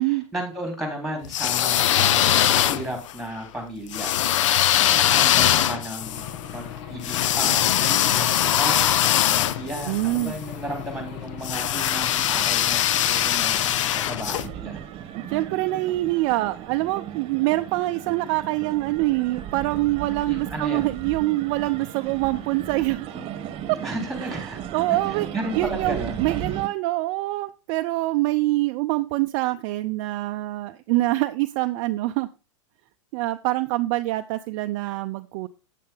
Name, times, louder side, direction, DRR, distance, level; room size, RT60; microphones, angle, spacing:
voice 1, 0.0-4.5 4.8-14.8 20.3-20.9 23.8-24.6 25.3-26.2, right 1 dB, ahead, 3 dB, 3.9 m, -34 dB
sound 1, 1.2-3.1 3.9-10.3 11.4-14.5, left 11 dB, 70° left, 0.6 m, -21 dB
Aircraft / Engine, 6.0-14.5, left 9 dB, 50° left, 1.4 m, -38 dB
voice 2, 9.9-10.3 15.1-23.1 23.7-23.8 24.2-25.3 25.5-32.3 33.1-35.5, right 18 dB, 50° right, 8 dB, 0.5 m, -25 dB
sound 2, 14.2-26.7, right 10 dB, 35° right, 1.3 m, -35 dB
8.6 x 8.3 x 3.8 m, 0.30 s
hypercardioid pair, 110°, 16 cm